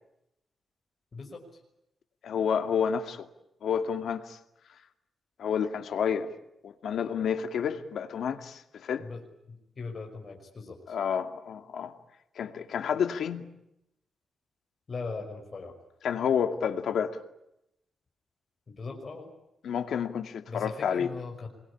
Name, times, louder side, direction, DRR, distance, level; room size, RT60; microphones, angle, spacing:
voice 1, 1.1-1.6 9.0-11.0 14.9-15.7 18.7-19.3 20.5-21.5, left 4 dB, 40° left, 5.8 m, -40 dB
voice 2, 2.2-3.3 3.6-4.4 5.4-6.3 6.6-9.1 10.9-12.0 12.4-13.5 16.0-17.2 19.6-21.1, left 7 dB, 80° left, 2.4 m, -30 dB
27.5 x 23.0 x 8.7 m
wide cardioid pair, 120°, 0 cm